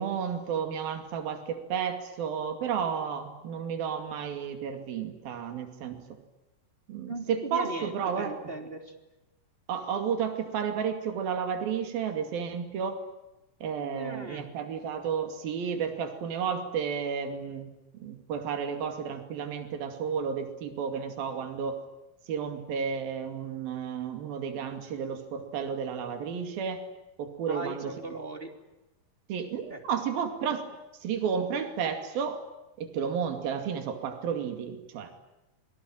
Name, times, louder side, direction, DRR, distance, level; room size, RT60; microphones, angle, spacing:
voice 1, 0.0-6.0 6.9-8.3 9.7-13.0 13.6-21.8 22.3-26.8 27.2-27.9 29.3-30.6 31.0-32.4 32.8-35.1, right 7 dB, 75° right, 7 dB, 4.2 m, -32 dB
voice 2, 7.1-8.9 13.8-14.5 27.5-28.5 29.7-29.8, right 2 dB, 15° right, 4 dB, 2.9 m, -38 dB
27.0 x 23.5 x 9.0 m, 0.98 s
omnidirectional pair, 4.3 m